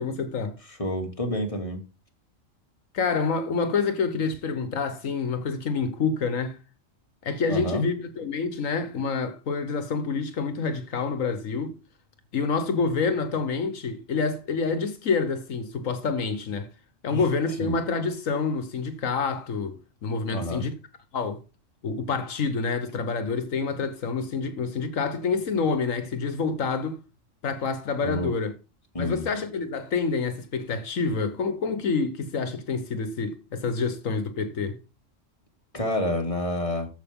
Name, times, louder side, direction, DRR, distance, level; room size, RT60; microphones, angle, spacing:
voice 1, 0.0-0.6 2.9-6.6 7.2-11.7 12.3-16.7 17.0-20.7 21.1-21.4 21.8-27.0 27.4-28.5 29.0-34.8, left 4 dB, 85° left, 1.6 m, -27 dB
voice 2, 0.7-1.8 7.5-7.8 17.1-17.2 17.6-17.7 20.3-20.7 28.0-28.3 28.9-29.2 35.7-36.9, left 1 dB, 25° left, 2.5 m, -29 dB
14.0 x 5.7 x 3.7 m
omnidirectional pair, 1.3 m